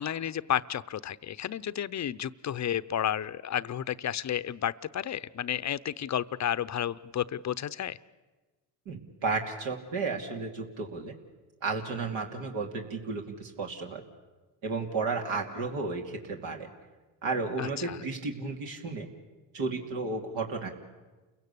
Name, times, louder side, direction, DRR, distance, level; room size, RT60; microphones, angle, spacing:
voice 1, 0.0-8.0 17.6-18.0, left 10 dB, 35° left, 15 dB, 0.7 m, -32 dB
voice 2, 8.9-11.2 11.6-14.0 14.6-16.7 17.2-19.1 19.5-20.7, right 3 dB, 75° right, 2 dB, 2.8 m, -33 dB
29.0 x 16.5 x 8.4 m, 1.2 s
supercardioid pair, 80°, 46 cm